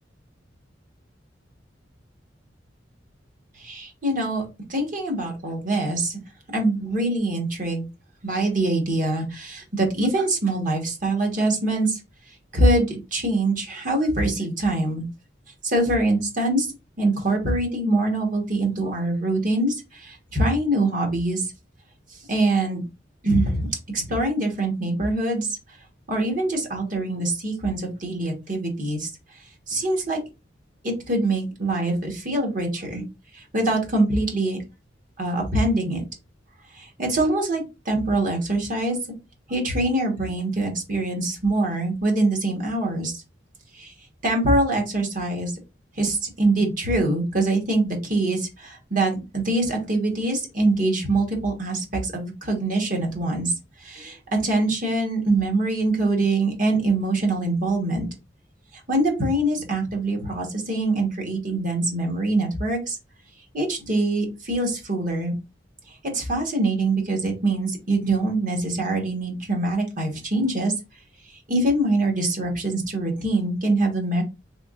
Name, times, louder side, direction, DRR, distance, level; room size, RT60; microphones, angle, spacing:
voice 1, 3.6-6.2 6.5-7.9 8.2-12.0 12.5-15.0 15.6-16.7 17.0-21.5 22.3-22.8 23.2-23.7 23.9-25.6 26.1-29.1 29.7-30.2 30.8-33.0 33.3-34.6 35.2-36.0 36.7-39.0 39.5-43.2 43.7-43.9 44.2-45.5 46.0-53.5 53.8-58.1 58.9-63.0 63.5-65.3 66.0-70.7 71.5-74.2, right 2 dB, 45° right, 2 dB, 1.3 m, -24 dB
3.6 x 3.5 x 2.4 m, 0.27 s
head